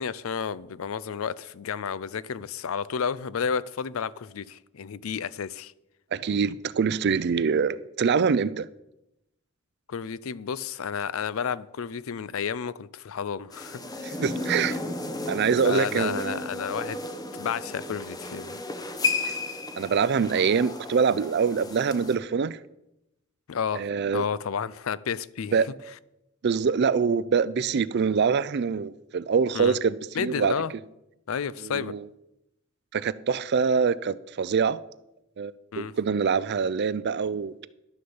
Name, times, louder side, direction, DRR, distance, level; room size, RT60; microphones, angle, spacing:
voice 1, 0.0-5.7 9.9-14.1 15.6-17.0 17.4-18.6 23.5-23.8 24.1-25.6 29.5-29.8 30.1-30.7 31.3-31.9 35.7-35.9, left 7 dB, 75° left, 0.5 m, -31 dB
voice 2, 6.1-8.7 14.0-14.8 15.3-16.5 19.8-22.6 23.7-24.3 25.5-25.7 26.4-30.5 31.6-32.1 32.9-34.8 35.4-37.7, right 6 dB, 50° right, 0.4 m, -25 dB
sound 1, 13.5-22.1, left 2 dB, 20° left, 0.9 m, -33 dB
11.5 x 6.6 x 7.0 m
head